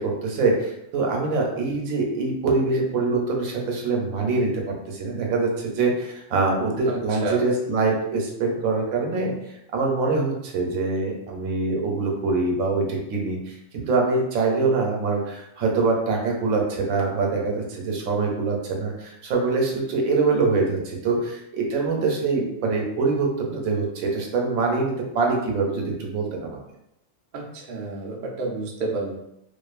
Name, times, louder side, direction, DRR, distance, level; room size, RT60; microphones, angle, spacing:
voice 1, 0.0-9.3 9.7-26.6, right 3 dB, 85° right, 1 dB, 1.1 m, -24 dB
voice 2, 6.9-7.4 27.3-29.2, right 3 dB, 60° right, -1 dB, 0.5 m, -30 dB
2.5 x 2.4 x 2.4 m, 0.80 s
omnidirectional pair, 1.4 m